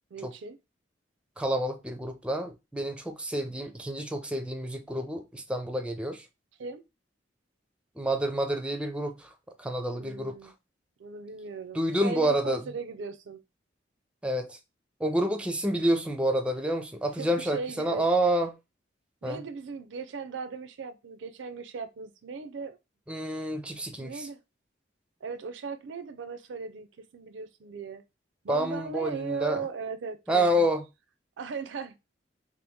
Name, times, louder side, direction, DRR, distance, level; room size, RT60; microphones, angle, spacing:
voice 1, 0.1-0.6 6.6-6.8 9.9-10.5 11.0-13.4 17.1-18.0 19.2-22.8 23.9-24.4 25.2-28.0 28.4-30.7 31.4-32.0, right 5 dB, 75° right, 0.4 m, -38 dB
voice 2, 1.4-6.3 8.0-9.3 9.6-10.5 11.7-12.7 14.2-14.6 15.0-18.6 19.2-19.4 23.1-24.3 28.5-29.7 30.3-30.8, right 1 dB, 5° right, 0.4 m, -28 dB
2.9 x 2.4 x 3.4 m
head